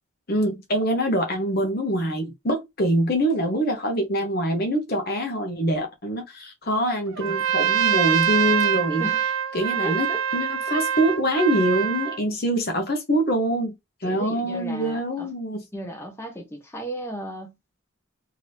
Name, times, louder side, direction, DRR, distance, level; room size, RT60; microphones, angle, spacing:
voice 1, 0.3-9.1 9.5-13.7 14.0-15.6, right 1 dB, 45° left, 0.9 m, -24 dB
Trumpet, 7.2-12.2, right 9 dB, 80° right, 0.5 m, -24 dB
voice 2, 9.8-10.2 14.0-15.3 15.7-17.5, equal, 10° left, 0.7 m, -34 dB
2.9 x 2.7 x 3.3 m
head